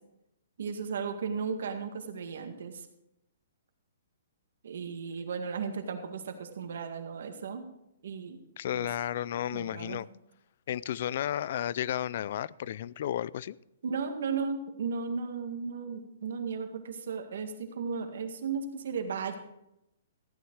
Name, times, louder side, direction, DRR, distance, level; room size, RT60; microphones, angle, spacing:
voice 1, 0.6-2.9 4.6-7.6 8.0-8.4 8.7-8.9 9.5-10.0 13.8-19.4, right 5 dB, 70° right, 5 dB, 1.9 m, -35 dB
voice 2, 8.6-10.1 10.7-13.6, left 11 dB, 50° left, 22 dB, 0.4 m, -33 dB
14.5 x 9.4 x 4.7 m, 0.84 s
hypercardioid pair, 165°, 0 cm